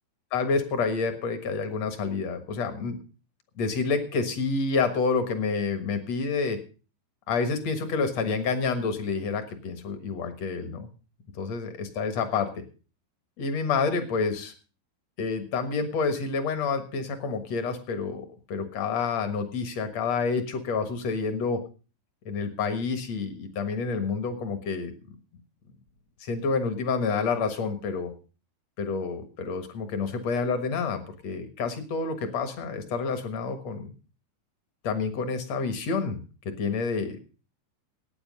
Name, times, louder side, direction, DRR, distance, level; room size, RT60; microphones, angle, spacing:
voice 1, 0.3-3.0 3.6-6.6 7.3-10.9 11.4-12.5 13.4-14.5 15.2-21.6 22.2-24.9 26.2-28.1 28.8-33.9 34.8-36.2 36.4-37.2, left 4 dB, 65° left, 9 dB, 1.7 m, -28 dB
17.0 x 9.2 x 5.3 m, 0.36 s
omnidirectional pair, 5.2 m